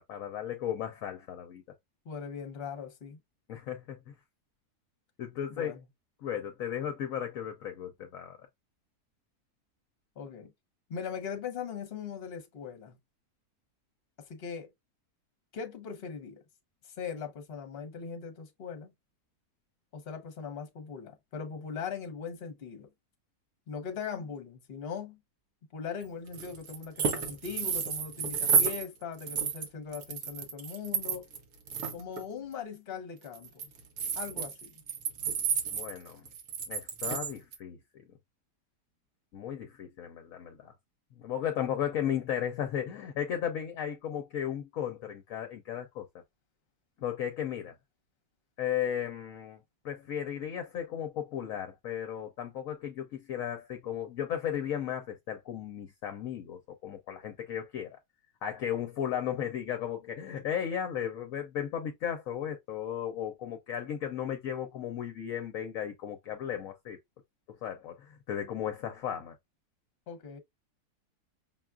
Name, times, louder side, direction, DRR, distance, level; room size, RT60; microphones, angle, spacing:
voice 1, 0.1-1.6 3.5-4.1 5.2-5.8 6.2-8.4 35.7-36.3 36.7-38.0 39.3-40.7 41.2-46.1 47.0-47.7 48.6-49.6 49.8-58.0 58.4-67.0 67.6-69.4, left 9 dB, 65° left, 0.9 m, -35 dB
voice 2, 2.0-3.2 5.6-5.8 10.2-10.5 10.9-13.0 14.2-14.7 15.5-16.4 16.8-18.9 19.9-22.9 23.7-25.2 25.7-31.2 31.9-33.6 34.2-34.7 70.1-70.4, left 6 dB, 45° left, 1.0 m, -40 dB
sound 1, 26.3-28.9 29.2-31.4 31.7-32.2 33.3-37.6, right 6 dB, 65° right, 1.3 m, -31 dB
5.7 x 2.3 x 2.3 m
omnidirectional pair, 1.7 m